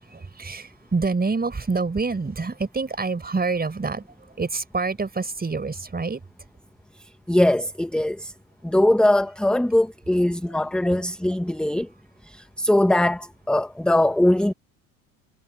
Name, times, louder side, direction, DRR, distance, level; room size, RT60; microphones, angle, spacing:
voice 1, 0.1-4.0 4.4-6.2, right 4 dB, 20° right, 5.2 m, -26 dB
voice 2, 7.3-8.3 8.6-11.9 12.6-14.5, left 1 dB, ahead, 1.2 m, -21 dB
hypercardioid pair, 70°, 42 cm